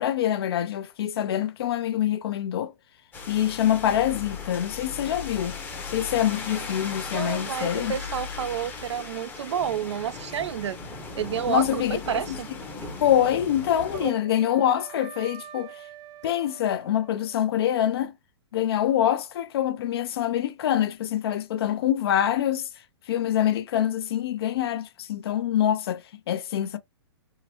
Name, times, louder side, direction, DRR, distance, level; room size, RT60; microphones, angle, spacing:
voice 1, 0.0-2.7 3.3-5.6 5.9-7.9 11.5-12.4 13.0-15.7 16.2-18.1 18.5-22.7 23.1-26.8, left 11 dB, 60° left, 0.6 m, -25 dB
sound 1, 3.1-14.1, left 4 dB, 15° left, 0.8 m, -37 dB
voice 2, 7.1-10.8 11.2-12.5 14.0-14.1, right 9 dB, 85° right, 0.4 m, -30 dB
Wind instrument woodwind instrument, 13.6-17.7, right 10 dB, 35° right, 0.7 m, -46 dB
3.7 x 2.1 x 2.9 m
hypercardioid pair, 140°, 14 cm